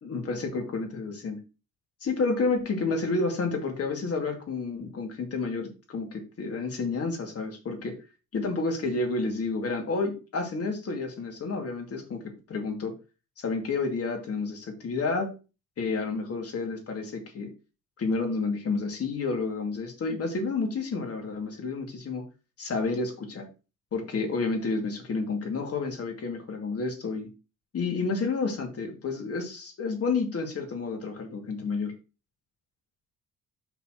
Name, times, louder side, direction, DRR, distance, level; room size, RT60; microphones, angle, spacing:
voice 1, 0.0-1.4 2.0-8.0 8.3-12.9 13.4-15.3 15.8-17.5 18.0-22.2 22.6-23.5 23.9-27.3 27.7-31.9, left 3 dB, 50° left, 2 dB, 2.7 m, -30 dB
5.8 x 4.3 x 6.0 m, 0.32 s
cardioid pair, 90°, 30 cm